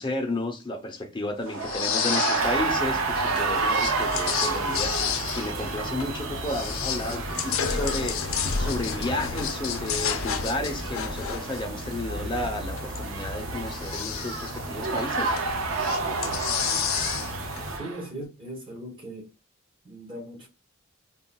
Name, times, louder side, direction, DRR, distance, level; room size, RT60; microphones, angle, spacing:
voice 1, 0.0-15.3, left 1 dB, 25° left, 0.7 m, -32 dB
sound 1, 1.5-18.0, right 4 dB, 90° right, 0.5 m, -31 dB
sound 2, 1.6-2.6 2.9-6.2 6.5-13.0 13.5-14.6 15.0-15.5 15.8-17.6, left 8 dB, 90° left, 0.5 m, -31 dB
sound 3, 2.4-17.8, equal, 75° right, 1.0 m, -37 dB
voice 2, 17.8-19.3 19.8-20.5, right 1 dB, 25° right, 1.1 m, -38 dB
4.4 x 2.4 x 2.3 m
head